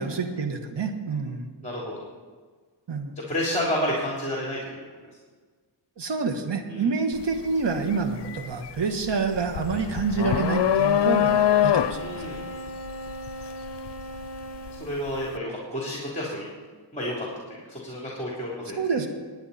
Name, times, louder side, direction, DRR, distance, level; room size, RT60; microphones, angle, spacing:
voice 1, 0.0-1.5 2.9-3.1 6.0-12.0 18.8-19.1, right 5 dB, 75° right, 5 dB, 1.6 m, -27 dB
voice 2, 1.6-2.1 3.2-4.7 6.7-6.9 12.0-12.4 14.7-16.5 16.9-17.3 17.7-18.8, equal, 15° left, -4 dB, 3.3 m, -30 dB
sound 1, 7.1-7.4 7.8-14.8, left 10 dB, 70° left, 0.6 m, -24 dB
sound 2, 10.1-15.0, equal, 40° left, 1.9 m, -38 dB
20.0 x 9.2 x 4.2 m, 1.5 s
cardioid pair, 65°, 43 cm